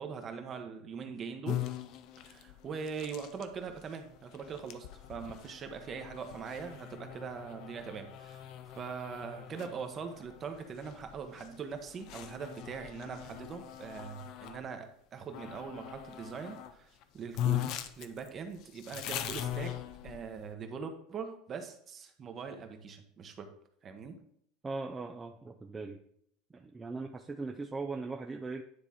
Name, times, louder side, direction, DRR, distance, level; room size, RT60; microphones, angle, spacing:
voice 1, 0.0-1.7 2.2-8.5 8.7-16.9 17.1-19.8 20.0-23.5 23.8-24.2, right 6 dB, 35° right, 6 dB, 1.0 m, -42 dB
sound 1, 1.4-14.6 15.3-16.7 17.0-17.1 17.3-20.5, left 12 dB, 60° left, 0.6 m, -41 dB
voice 2, 24.6-26.0 26.5-28.6, right 3 dB, 20° right, 2 dB, 0.5 m, -39 dB
9.5 x 3.4 x 4.2 m, 0.68 s
supercardioid pair, 105°, 0 cm